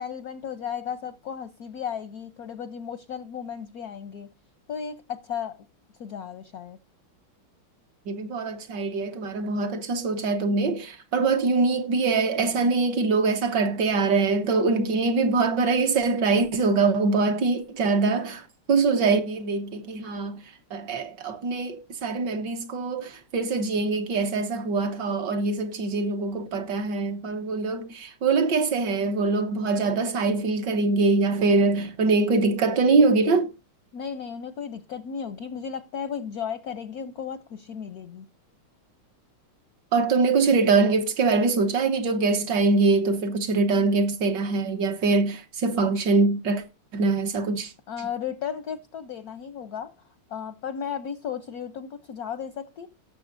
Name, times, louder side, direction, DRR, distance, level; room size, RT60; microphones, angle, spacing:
voice 1, 0.0-4.3 4.7-5.6 6.0-6.8 33.9-38.3 47.9-49.9 50.3-52.9, left 7 dB, 65° left, 0.9 m, -34 dB
voice 2, 8.1-20.4 20.7-33.5 39.9-46.6 46.9-47.7, right 3 dB, 60° right, 1.6 m, -23 dB
18.0 x 6.8 x 2.6 m
omnidirectional pair, 2.4 m